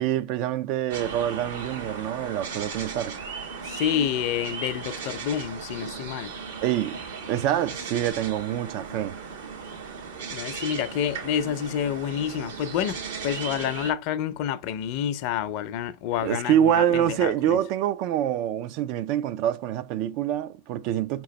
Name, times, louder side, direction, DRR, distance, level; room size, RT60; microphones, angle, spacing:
voice 1, 0.0-3.2 6.6-7.0 7.3-9.2 16.2-21.2, right 11 dB, 55° right, 0.4 m, -26 dB
sound 1, 0.9-13.9, right 5 dB, 80° right, 1.2 m, -37 dB
voice 2, 3.6-6.3 10.3-17.6, left 9 dB, 55° left, 0.5 m, -28 dB
5.1 x 3.0 x 3.0 m
hypercardioid pair, 105°, 0 cm